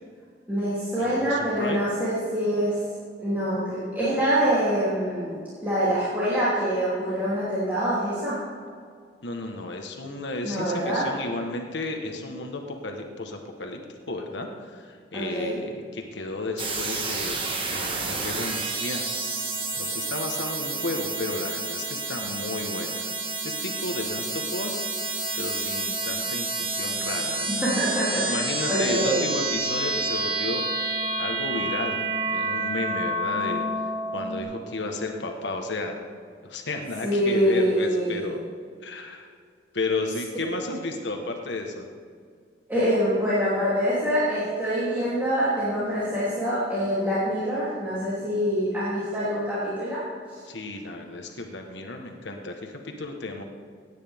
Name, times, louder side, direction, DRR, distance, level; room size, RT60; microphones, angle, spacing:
voice 1, 0.5-2.8 3.2-8.4 10.4-11.1 15.1-15.6 27.6-28.3 28.7-29.2 37.0-38.3 42.7-50.0 50.3-50.4, equal, 10° right, -12 dB, 3.1 m, -25 dB
voice 2, 1.0-1.8 9.2-13.8 14.1-19.4 19.7-23.1 23.4-24.9 25.3-27.7 28.3-33.6 34.1-35.9 36.4-38.4 38.8-39.3 39.7-41.9 50.4-53.4, left 2 dB, 80° left, 3 dB, 1.3 m, -33 dB
sound 1, 16.6-34.4, right 2 dB, 30° right, 1.4 m, -29 dB
16.5 x 9.9 x 3.6 m, 2.1 s
head